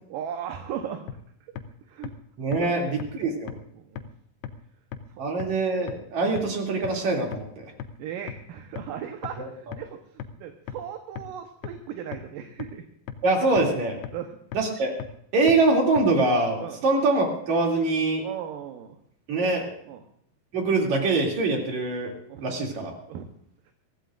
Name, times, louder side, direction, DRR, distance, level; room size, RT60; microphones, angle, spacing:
voice 1, 0.1-1.0 1.5-1.6 1.9-2.1 2.6-2.8 3.8-4.1 5.1-5.4 6.2-6.3 8.0-10.0 10.4-12.8 14.1-14.3 16.6-16.8 18.2-19.0 19.9-20.0 22.3-22.5 23.1-23.3 23.7-23.8, right 9 dB, 75° right, 5 dB, 2.5 m, -37 dB
sound 1, 1.1-1.2 1.6-1.7 2.0-2.1 2.5-2.6 3.0-3.1 3.5-3.6 4.0-4.1 4.4-4.5 4.9-5.0 5.4-5.5 5.9-6.0 6.4-6.5 6.8-6.9 7.3-7.4 7.8-7.9 8.3-8.4 8.8-8.9 9.2-9.3 9.7-9.8 10.2-10.3 10.7-10.8 11.2-11.3 11.6-11.7 12.1-12.2 12.6-12.7 13.1-13.2 13.6-13.7 14.0-14.1 14.5-14.6 15.0-15.1 15.5-15.6 16.0-16.1, left 9 dB, 80° left, 2.5 m, -35 dB
voice 2, 2.4-3.5 5.2-7.5 9.4-9.5 13.2-14.0 14.5-14.9 15.3-18.2 19.3-19.7 20.5-22.1 22.4-22.9, right 3 dB, 50° right, 0 dB, 3.8 m, -24 dB
23.5 x 15.0 x 2.5 m, 0.68 s
omnidirectional pair, 4.2 m